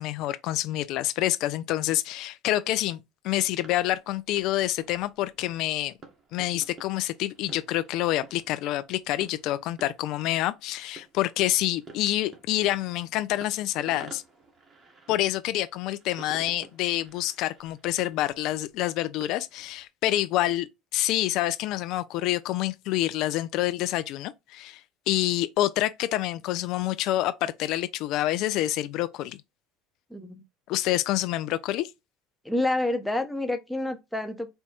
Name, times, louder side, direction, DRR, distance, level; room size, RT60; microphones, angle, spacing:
voice 1, 0.0-3.0 3.2-5.9 6.3-14.2 15.1-24.8 25.1-29.4 30.7-31.9, left 14 dB, 65° left, 0.3 m, -27 dB
sound 1, 3.5-19.9, right 4 dB, 30° right, 1.5 m, -52 dB
voice 2, 30.1-30.4 32.4-34.5, left 1 dB, 5° left, 0.8 m, -28 dB
4.4 x 2.3 x 4.2 m
supercardioid pair, 85°, 0 cm